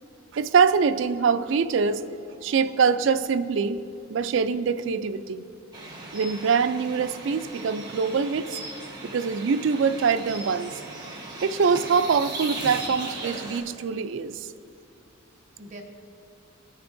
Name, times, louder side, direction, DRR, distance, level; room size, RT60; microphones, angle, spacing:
voice 1, 0.3-2.0 2.4-3.8 4.1-5.4 6.1-8.5 9.0-10.7 11.4-14.5, right 5 dB, 60° right, 12 dB, 0.3 m, -24 dB
voice 2, 2.1-3.0 15.3-15.8, right 2 dB, 35° right, 0 dB, 1.0 m, -49 dB
sound 1, 5.7-13.6, right 2 dB, 20° right, 1.1 m, -38 dB
16.0 x 6.6 x 2.6 m, 2.5 s
head